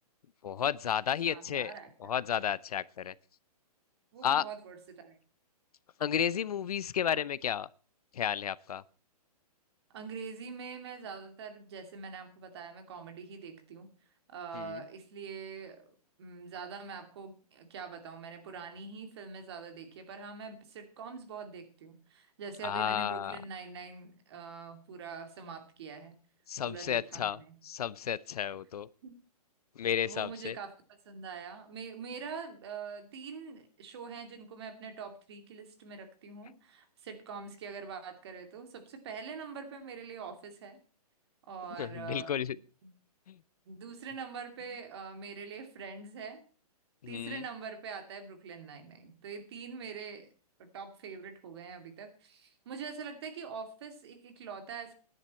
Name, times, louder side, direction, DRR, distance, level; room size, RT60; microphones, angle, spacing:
voice 1, 0.4-1.7 2.0-3.1 4.2-4.4 6.0-7.7 8.1-8.8 14.5-14.8 22.6-23.4 26.5-27.4 27.6-28.9 29.8-30.6 41.8-42.6 43.3-43.4 47.0-47.4, left 9 dB, 70° left, 0.7 m, -32 dB
voice 2, 1.3-2.2 4.1-5.2 9.9-13.9 14.3-15.9 16.2-26.2 26.6-27.6 29.0-29.2 29.8-40.8 41.5-42.9 43.7-46.4 47.1-50.3 50.6-54.9, right 5 dB, 40° right, 2.5 m, -44 dB
14.0 x 10.5 x 4.3 m
hypercardioid pair, 170°, 20 cm